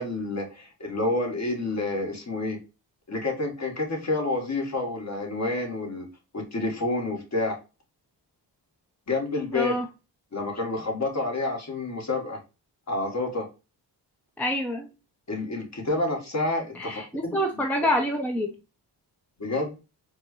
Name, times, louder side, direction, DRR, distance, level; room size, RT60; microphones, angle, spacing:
voice 1, 0.0-2.6 3.1-6.1 6.3-7.6 9.1-9.8 10.3-12.4 12.9-13.5 15.3-17.4 19.4-19.8, left 2 dB, 40° left, 1 dB, 1.4 m, -29 dB
voice 2, 9.5-9.9 14.4-14.9 16.7-18.5, equal, 5° left, 3 dB, 0.5 m, -27 dB
4.4 x 2.1 x 3.0 m, 0.29 s
cardioid pair, 70°, 44 cm